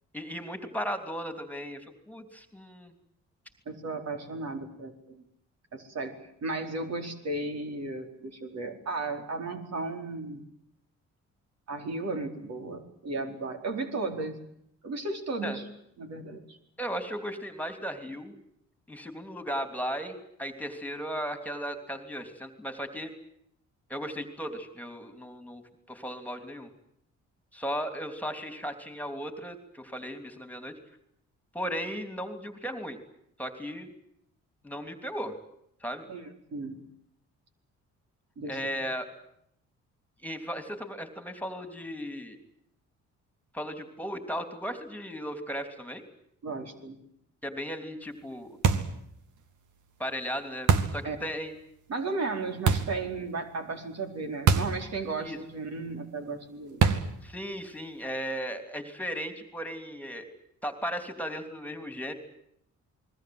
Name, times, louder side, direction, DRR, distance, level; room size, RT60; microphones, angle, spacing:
voice 1, 0.1-2.9 15.4-15.6 16.8-18.3 18.9-23.1 23.9-25.6 25.9-26.7 27.5-30.7 31.5-33.0 33.4-33.9 34.6-35.3 35.8-36.1 38.5-39.1 40.2-42.4 43.5-46.0 47.4-48.6 50.0-51.5 55.2-55.4 57.2-60.3 60.6-62.1, equal, 5° left, 7 dB, 3.2 m, -36 dB
voice 2, 3.7-5.2 5.7-6.1 6.4-10.4 11.7-14.4 14.8-15.6 16.0-16.6 36.1-36.8 38.4-38.6 46.4-47.0 51.0-51.2 51.9-56.8, right 3 dB, 60° right, 4 dB, 4.7 m, -35 dB
sound 1, 48.6-49.0 50.7-51.0 52.7-53.0 54.5-54.8 55.1-55.2 56.8-57.2, right 6 dB, 80° right, 2.3 m, -24 dB
29.0 x 21.5 x 7.9 m, 0.73 s
cardioid pair, 90°, 30 cm